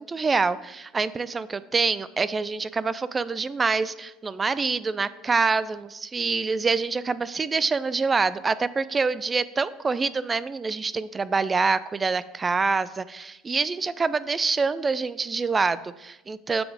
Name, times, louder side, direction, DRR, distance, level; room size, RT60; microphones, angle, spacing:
voice 1, 0.0-16.6, right 4 dB, 25° right, 17 dB, 0.3 m, -26 dB
7.6 x 4.0 x 4.8 m, 0.98 s
supercardioid pair, 85°, 0 cm